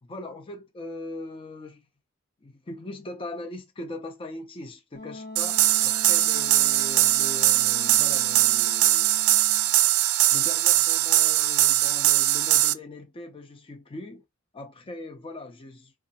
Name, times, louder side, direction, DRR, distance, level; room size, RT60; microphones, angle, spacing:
voice 1, 0.0-1.9 2.4-9.2 10.3-14.2 14.5-15.9, left 2 dB, 25° left, 0.5 m, -40 dB
Wind instrument woodwind instrument, 4.9-9.8, left 2 dB, 55° left, 0.8 m, -42 dB
sound 1, 5.4-12.7, right 15 dB, 80° right, 0.4 m, -21 dB
3.7 x 2.4 x 2.8 m
head